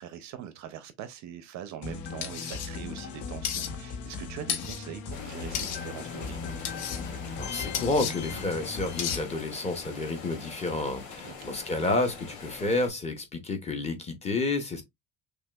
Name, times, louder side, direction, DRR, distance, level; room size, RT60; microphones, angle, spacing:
voice 1, 0.0-6.4 11.2-11.3, right 10 dB, 45° right, 0.5 m, -42 dB
sound 1, 1.8-9.2, left 5 dB, 90° left, 1.2 m, -38 dB
sound 2, 2.2-2.7 3.4-3.7 4.5-4.8 5.5-5.8 6.6-7.0 7.7-8.1 9.0-9.2, left 8 dB, 60° left, 1.1 m, -32 dB
sound 3, 5.1-12.9, left 5 dB, 45° left, 2.3 m, -44 dB
voice 2, 7.4-14.8, left 2 dB, 15° left, 0.6 m, -30 dB
6.1 x 2.4 x 2.3 m
cardioid pair, 170°, 42 cm